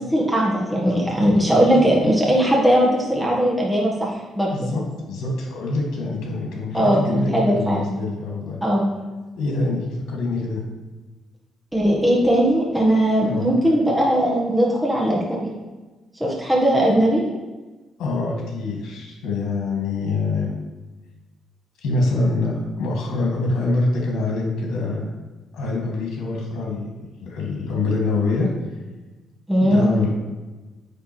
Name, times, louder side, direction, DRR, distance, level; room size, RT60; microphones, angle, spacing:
voice 1, 0.0-4.7 6.7-7.9 8.6-8.9 11.7-15.5 16.2-17.2 29.5-29.9, equal, 5° right, -4 dB, 1.5 m, -19 dB
voice 2, 1.2-2.1 4.5-8.6 9.3-10.6 13.2-13.5 18.0-20.5 21.8-25.2 25.5-26.9 27.2-28.5 29.6-30.1, left 3 dB, 80° left, -1 dB, 1.9 m, -25 dB
9.4 x 3.6 x 4.5 m, 1.2 s
cardioid pair, 90°, 0 cm